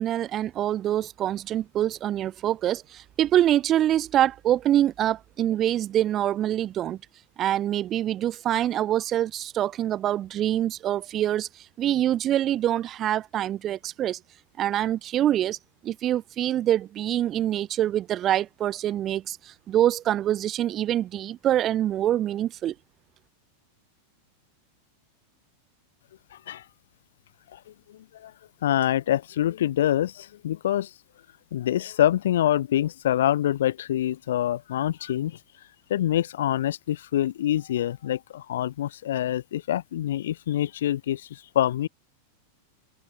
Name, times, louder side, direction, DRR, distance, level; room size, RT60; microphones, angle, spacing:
voice 1, 0.0-7.0 7.4-14.2 14.6-15.6 15.8-22.7, right 12 dB, 30° right, 1.8 m, -25 dB
voice 2, 28.6-30.9 31.5-35.4 35.9-41.9, left 12 dB, 60° left, 2.1 m, -25 dB
figure-of-eight pair, 90°, 0 cm